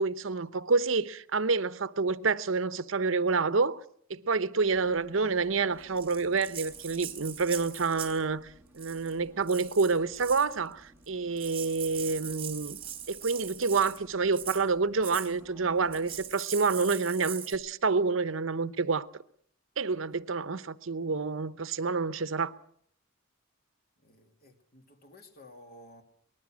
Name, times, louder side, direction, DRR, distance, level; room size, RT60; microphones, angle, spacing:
voice 1, 0.0-3.8 4.1-8.5 8.7-12.8 13.1-19.1 19.8-22.5, right 4 dB, 70° right, 0.8 m, -28 dB
sound 1, 4.7-16.3, equal, 10° right, 1.9 m, -57 dB
Rattle (instrument), 6.0-8.2 8.7-9.1 9.5-10.5 11.1-11.2 11.4-14.0 14.3-14.6 15.0-15.3 15.9-17.6, right 9 dB, 30° right, 3.9 m, -41 dB
voice 2, 24.0-26.0, left 1 dB, 50° left, 2.7 m, -53 dB
24.0 x 19.5 x 6.3 m
head